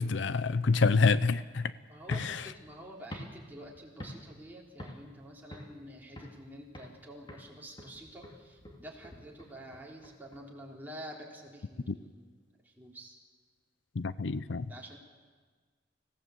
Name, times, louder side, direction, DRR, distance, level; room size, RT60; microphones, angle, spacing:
voice 1, 0.0-1.7 2.1-2.5 11.9-12.0 14.0-14.7, left 4 dB, 70° left, 15 dB, 0.6 m, -27 dB
voice 2, 1.9-12.3 12.8-13.2 14.7-15.0, equal, 10° right, -2 dB, 3.7 m, -48 dB
sound 1, 2.0-4.5 4.8-5.1 5.5-6.4 6.7-7.0 7.3-10.4, equal, 25° left, 2.5 m, -47 dB
26.0 x 17.0 x 8.1 m, 1.5 s
head